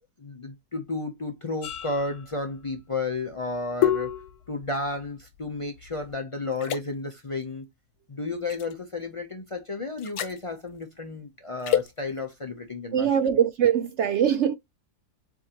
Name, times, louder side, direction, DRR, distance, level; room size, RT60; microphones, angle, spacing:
voice 1, 0.2-4.1 4.5-7.7 8.1-13.1, left 3 dB, 50° left, 0.3 m, -32 dB
sound 1, 1.6-6.1 6.6-6.8 8.5-8.7 10.0-10.4 11.6-11.9, left 11 dB, 75° left, 1.1 m, -30 dB
voice 2, 12.9-14.5, right 9 dB, 75° right, 0.6 m, -22 dB
7.1 x 2.6 x 2.9 m
omnidirectional pair, 1.8 m